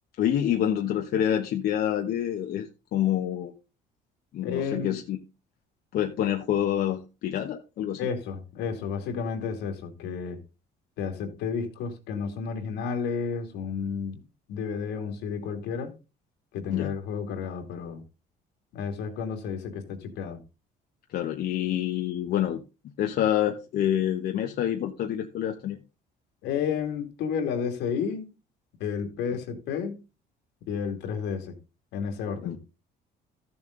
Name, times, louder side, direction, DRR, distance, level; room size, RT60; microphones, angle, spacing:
voice 1, 0.2-3.5 4.3-5.2 5.9-8.0 16.7-16.9 21.1-22.6 23.0-25.8 32.4-32.6, left 10 dB, 65° left, 1.2 m, -27 dB
voice 2, 4.4-5.0 8.0-10.4 11.0-14.2 14.5-15.9 16.5-18.0 18.7-20.4 26.4-28.3 28.8-30.0 30.7-31.5 31.9-32.6, left 6 dB, 85° left, 2.6 m, -31 dB
14.0 x 7.1 x 3.8 m
cardioid pair, 110°, 17 cm